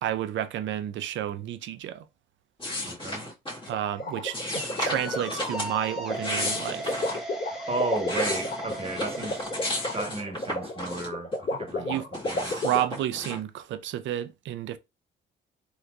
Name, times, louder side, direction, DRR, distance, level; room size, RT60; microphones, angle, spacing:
voice 1, 0.0-2.1 3.7-7.0 11.8-12.0 12.4-14.8, right 12 dB, 70° right, 0.5 m, -31 dB
sound 1, 2.6-3.7 4.3-5.7 6.1-7.2 7.8-11.4 11.7-13.4, left 1 dB, 25° left, 1.8 m, -34 dB
voice 2, 2.8-3.3 7.4-9.5 9.9-12.6, right 2 dB, 30° right, 1.1 m, -34 dB
sound 2, 3.6-10.0, right 1 dB, ahead, 1.1 m, -38 dB
sound 3, 3.7-12.8, left 2 dB, 55° left, 2.0 m, -32 dB
3.5 x 2.9 x 2.4 m
cardioid pair, 90°, 20 cm